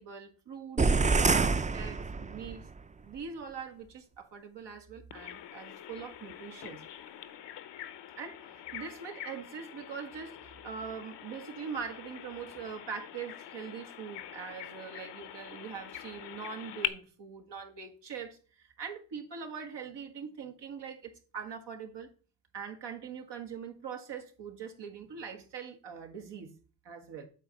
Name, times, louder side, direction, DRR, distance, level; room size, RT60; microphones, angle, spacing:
voice 1, 0.0-2.7 3.0-6.8 8.2-22.1 22.5-26.5 26.8-27.3, right 6 dB, 90° right, 1.6 m, -42 dB
sound 1, 0.8-2.6, right 4 dB, 20° right, 0.4 m, -26 dB
Bird vocalization bird call bird song, 5.1-16.9, left 11 dB, 85° left, 0.8 m, -44 dB
8.2 x 4.1 x 6.9 m
cardioid pair, 65°, 41 cm